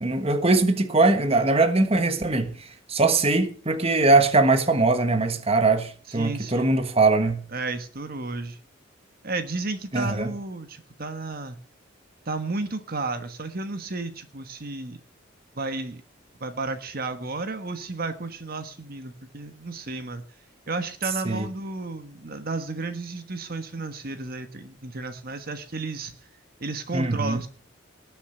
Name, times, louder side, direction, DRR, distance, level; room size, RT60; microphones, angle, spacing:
voice 1, 0.0-7.4 9.9-10.3 21.2-21.5 26.9-27.4, right 3 dB, 30° right, 1.4 m, -21 dB
voice 2, 6.1-6.7 7.5-8.6 9.2-11.6 12.2-15.0 15.6-16.0 16.4-20.2 20.7-26.1 26.6-27.5, right 3 dB, 50° right, 1.4 m, -32 dB
19.0 x 7.1 x 6.7 m
head